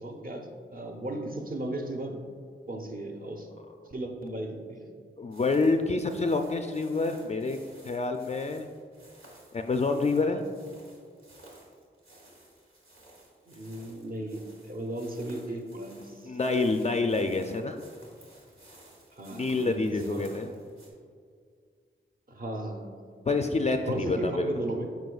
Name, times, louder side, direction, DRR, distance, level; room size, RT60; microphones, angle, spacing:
voice 1, 0.0-2.2 2.7-3.5 3.8-4.9 13.5-16.3 19.2-20.6 22.3-22.9 23.9-25.0, right 1 dB, 45° right, 3 dB, 0.9 m, -36 dB
voice 2, 5.2-7.6 7.8-8.7 9.5-10.4 16.2-17.8 19.3-20.5 23.3-24.6, left 3 dB, 35° left, 5 dB, 0.4 m, -27 dB
sound 1, 5.3-20.9, right 1 dB, 90° right, 1.3 m, -55 dB
7.7 x 5.2 x 2.4 m, 2.1 s
cardioid pair, 45°, 20 cm